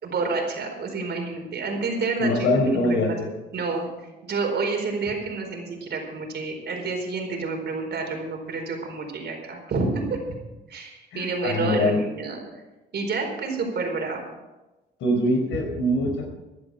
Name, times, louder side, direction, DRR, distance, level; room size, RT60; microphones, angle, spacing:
voice 1, 0.0-3.0 3.5-10.2 10.7-12.4 12.9-14.3, right 3 dB, 60° right, 2 dB, 4.5 m, -29 dB
voice 2, 2.2-3.3 11.1-12.0 15.0-16.3, left 1 dB, 80° left, 3 dB, 4.4 m, -23 dB
16.0 x 11.0 x 5.6 m, 1.1 s
cardioid pair, 90°, 20 cm